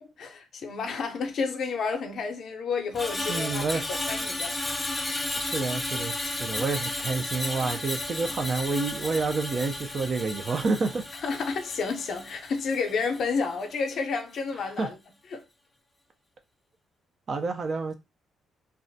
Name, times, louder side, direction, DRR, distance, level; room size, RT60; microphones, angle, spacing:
voice 1, 0.0-4.6 11.2-15.0 15.3-15.4, left 5 dB, 60° left, 0.5 m, -30 dB
Screech, 2.9-13.3 13.6-13.9, left 2 dB, 10° left, 0.5 m, -33 dB
voice 2, 3.3-3.8 5.4-11.0 14.8-14.9 17.3-17.9, right 4 dB, 50° right, 0.4 m, -29 dB
2.3 x 2.1 x 2.6 m
cardioid pair, 90°, 0 cm